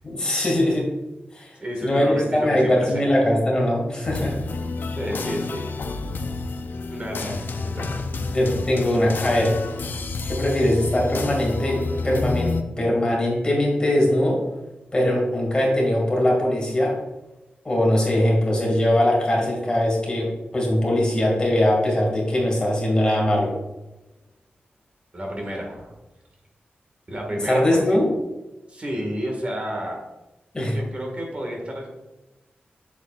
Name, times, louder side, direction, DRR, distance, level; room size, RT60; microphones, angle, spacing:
voice 1, 0.0-0.9 1.3-1.6 1.8-4.4 8.3-9.6 10.2-14.4 14.9-17.0 17.6-23.5 27.3-28.1 30.5-30.8, left 1 dB, 25° left, -2 dB, 2.3 m, -21 dB
voice 2, 1.6-3.0 5.0-5.7 6.9-8.1 11.6-11.7 25.1-25.9 27.1-27.6 28.7-30.0 30.7-31.9, equal, 35° right, 0 dB, 1.9 m, -31 dB
sound 1, 4.0-12.6, left 3 dB, 65° left, 0.6 m, -29 dB
7.9 x 7.2 x 2.5 m, 1.0 s
wide cardioid pair, 150°, 4 cm